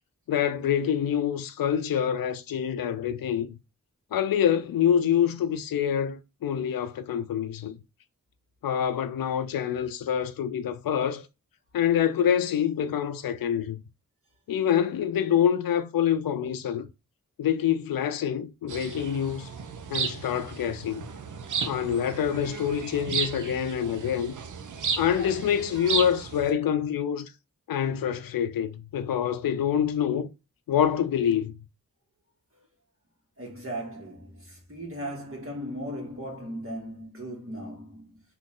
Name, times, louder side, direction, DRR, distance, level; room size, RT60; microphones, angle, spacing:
voice 1, 0.3-3.6 4.1-7.8 8.6-11.3 11.7-13.8 14.5-16.9 17.4-19.5 19.9-21.0 21.6-24.3 25.0-27.3 27.7-30.3 30.7-31.5, left 9 dB, 90° left, 0.5 m, -26 dB
sound 1, 18.7-26.5, right 5 dB, 65° right, 0.7 m, -34 dB
voice 2, 33.4-38.2, equal, 40° right, 1.9 m, -37 dB
3.8 x 2.9 x 3.6 m
cardioid pair, 60°, 34 cm